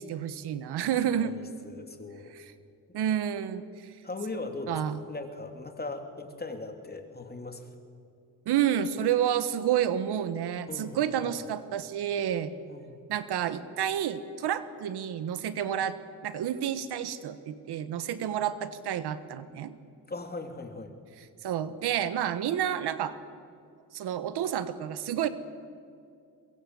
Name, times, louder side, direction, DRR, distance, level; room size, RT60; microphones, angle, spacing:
voice 1, 0.0-1.4 2.3-2.4 2.9-3.9 4.7-5.0 8.4-12.5 13.1-16.0 16.2-19.7 21.2-23.2 23.9-25.3, right 10 dB, 85° right, 13 dB, 1.4 m, -30 dB
voice 2, 1.2-2.3 4.0-4.8 5.1-7.7 10.7-11.3 12.7-13.0 20.1-20.9, left 3 dB, 25° left, 5 dB, 3.1 m, -39 dB
23.0 x 23.0 x 7.9 m, 2.4 s
cardioid pair, 90°, 39 cm